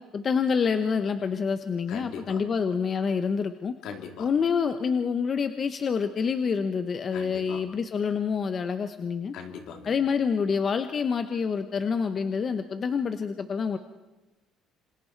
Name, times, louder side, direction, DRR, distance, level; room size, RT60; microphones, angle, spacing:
voice 1, 0.1-3.7 4.2-9.3 9.8-13.8, left 6 dB, 30° left, 9 dB, 0.9 m, -27 dB
voice 2, 1.9-2.4 3.8-4.3 7.1-7.6 9.3-9.9, left 6 dB, 70° left, 4 dB, 3.7 m, -40 dB
27.5 x 26.5 x 4.6 m, 1.2 s
cardioid pair, 150°, 0 cm